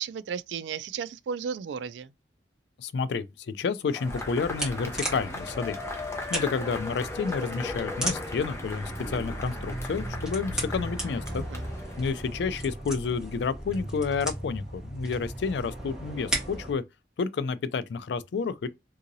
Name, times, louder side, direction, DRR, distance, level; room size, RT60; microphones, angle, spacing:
voice 1, 0.0-2.1 11.3-11.6, right 7 dB, 80° right, 0.3 m, -34 dB
voice 2, 2.8-5.8 6.3-11.4 12.0-16.8 17.2-18.7, left 5 dB, 70° left, 0.3 m, -30 dB
Cheering / Applause / Crowd, 3.9-12.6, left 2 dB, 15° left, 0.5 m, -38 dB
sound 1, 4.1-16.7, right 1 dB, 5° right, 1.5 m, -36 dB
3.7 x 2.8 x 2.6 m
head